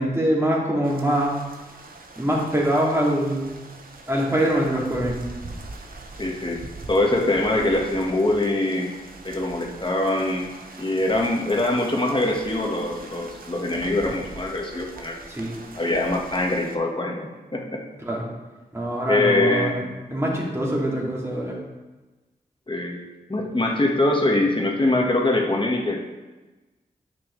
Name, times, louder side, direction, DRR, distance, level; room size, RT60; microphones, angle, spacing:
voice 1, 0.0-1.4 2.2-3.6 4.1-5.2 15.3-15.6 18.0-18.2 18.7-21.6, right 1 dB, 15° right, -3 dB, 2.3 m, -24 dB
sound 1, 0.8-16.8, right 3 dB, 65° right, 0.9 m, -42 dB
voice 2, 6.2-6.6 6.9-8.9 9.2-10.5 10.8-15.2 15.7-17.8 19.1-19.8 22.7-23.0 23.3-26.0, left 2 dB, 30° left, 0 dB, 1.5 m, -23 dB
9.8 x 6.1 x 3.2 m, 1.2 s
cardioid pair, 55°, 16 cm